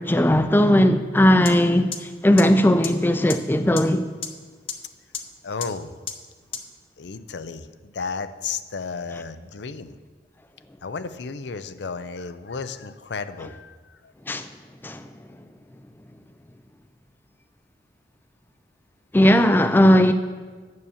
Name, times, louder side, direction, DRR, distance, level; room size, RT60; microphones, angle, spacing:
voice 1, 0.0-4.0 14.3-14.5 14.8-15.1 19.1-20.1, equal, 10° left, 0.4 m, -18 dB
sound 1, 1.5-1.6 1.9-2.0 2.4-2.5 2.8-2.9 3.3-3.4 3.8-3.9 4.2-4.3 4.7-4.8 5.1-5.2 5.6-5.7 6.1-6.2 6.5-6.6, left 7 dB, 30° left, 0.8 m, -29 dB
voice 2, 5.4-5.9 7.0-9.9 10.8-14.1, left 5 dB, 75° left, 0.6 m, -33 dB
9.5 x 7.0 x 7.2 m
head